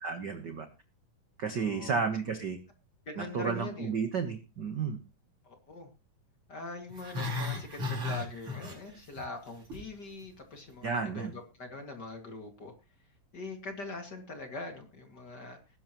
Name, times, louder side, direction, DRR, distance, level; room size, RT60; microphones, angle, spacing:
voice 1, 0.0-0.7 1.4-2.6 3.2-5.0 10.8-11.3, right 5 dB, 65° right, 7 dB, 1.1 m, -32 dB
voice 2, 1.6-2.0 3.1-3.9 5.4-5.9 6.5-12.7 13.3-15.6, left 3 dB, 35° left, 4 dB, 2.4 m, -42 dB
Growling, 6.9-9.2 9.5-9.9 10.2-10.3, left 3 dB, 40° right, 6.3 m, -35 dB
20.0 x 10.5 x 3.1 m, 0.30 s
omnidirectional pair, 3.8 m